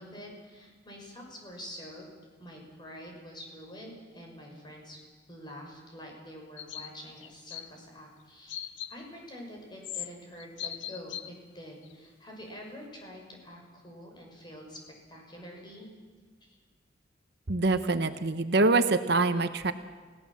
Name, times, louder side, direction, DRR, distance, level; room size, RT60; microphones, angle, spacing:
voice 1, 0.0-2.0 2.4-5.0 5.3-14.8 15.1-15.9 16.4-16.6, equal, 25° left, 0 dB, 6.1 m, -46 dB
sound 1, 6.6-6.9 7.2-7.7 8.5-8.9 9.8-10.1 10.4-11.3 11.9-12.0, left 11 dB, 85° left, 1.0 m, -38 dB
voice 2, 17.5-19.7, right 3 dB, 60° right, 9 dB, 1.1 m, -25 dB
29.5 x 17.0 x 7.4 m, 1.5 s
head